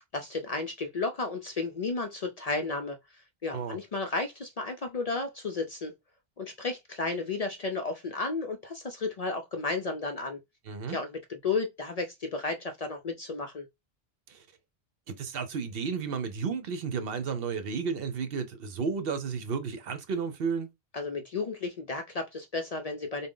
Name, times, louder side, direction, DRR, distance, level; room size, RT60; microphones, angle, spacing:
voice 1, 0.1-5.9 6.4-10.4 10.9-13.7 20.9-23.3, left 3 dB, 50° left, 0.5 m, -33 dB
voice 2, 10.7-11.0 14.3-14.4 15.1-20.7, right 5 dB, 65° right, 0.9 m, -32 dB
3.6 x 2.2 x 3.6 m
omnidirectional pair, 1.1 m